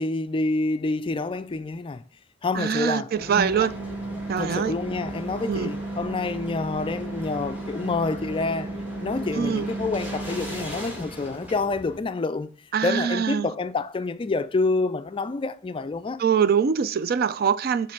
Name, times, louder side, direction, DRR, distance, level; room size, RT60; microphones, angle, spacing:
voice 1, 0.0-2.0 2.4-3.1 3.6-3.7 4.4-8.7 9.0-12.5 12.8-16.2, left 3 dB, 25° left, 0.4 m, -28 dB
voice 2, 2.5-3.7 4.3-4.7 5.5-5.7 9.3-9.7 12.7-13.5 16.2-17.9, right 7 dB, 50° right, 0.4 m, -23 dB
sound 1, 3.1-12.0, right 1 dB, 10° right, 1.7 m, -34 dB
7.6 x 3.2 x 6.3 m
head